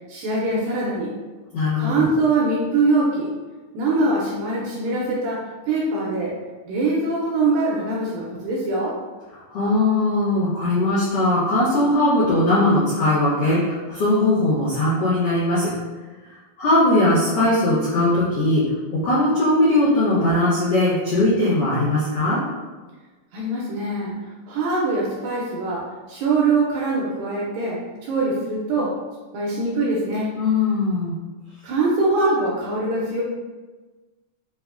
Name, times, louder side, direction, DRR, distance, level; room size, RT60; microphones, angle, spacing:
voice 1, 0.1-1.1 1.8-3.3 3.7-6.3 6.7-9.0 23.3-24.2 24.5-29.0 29.3-30.4 31.6-33.2, right 2 dB, 80° right, -4 dB, 2.1 m, -23 dB
voice 2, 1.5-2.0 9.5-15.7 16.6-18.6 18.9-22.4 30.3-31.1, left 1 dB, 70° left, -12 dB, 1.4 m, -19 dB
5.8 x 2.0 x 2.4 m, 1.3 s
omnidirectional pair, 4.4 m